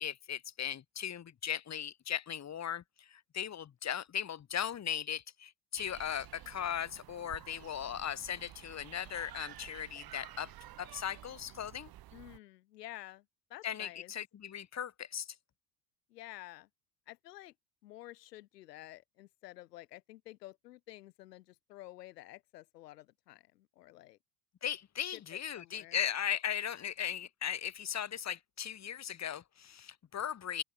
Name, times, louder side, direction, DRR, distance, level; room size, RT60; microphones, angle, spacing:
voice 1, 0.0-10.5 10.8-11.9 13.6-15.3 24.6-30.6, left 9 dB, 35° left, 3.5 m, -38 dB
sound 1, 5.8-12.4, right 14 dB, 45° right, 4.4 m, -52 dB
voice 2, 12.1-13.2 13.5-14.1 16.1-16.7 17.1-17.5 17.8-24.2 25.1-26.0, left 16 dB, 75° left, 3.2 m, -51 dB
open air
hypercardioid pair, 80°, 49 cm